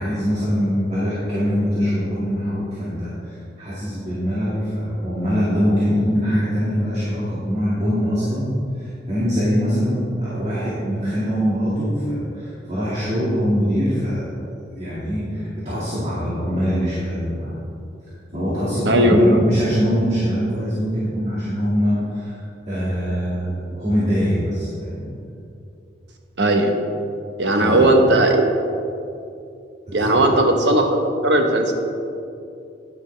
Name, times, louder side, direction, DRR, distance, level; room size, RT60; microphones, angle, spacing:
voice 1, 0.0-8.5 8.8-14.3 14.6-17.5 18.3-22.4 22.7-25.1 27.5-27.8 29.9-30.3, equal, 40° right, -9 dB, 1.9 m, -23 dB
voice 2, 18.9-19.2 26.4-26.7 27.4-28.4 29.9-31.7, right 1 dB, 75° right, 3 dB, 1.0 m, -17 dB
9.9 x 9.7 x 3.3 m, 2.7 s
head